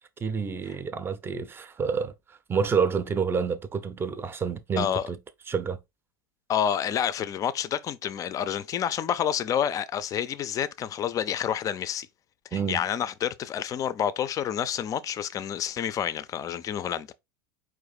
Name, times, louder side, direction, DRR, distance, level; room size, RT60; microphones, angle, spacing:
voice 1, 0.2-5.2 5.5-5.8 12.5-12.9, right 6 dB, 20° right, 0.6 m, -28 dB
voice 2, 6.5-12.1 12.5-17.1, left 9 dB, 30° left, 0.5 m, -29 dB
4.8 x 2.5 x 3.9 m
figure-of-eight pair, 85°, 12 cm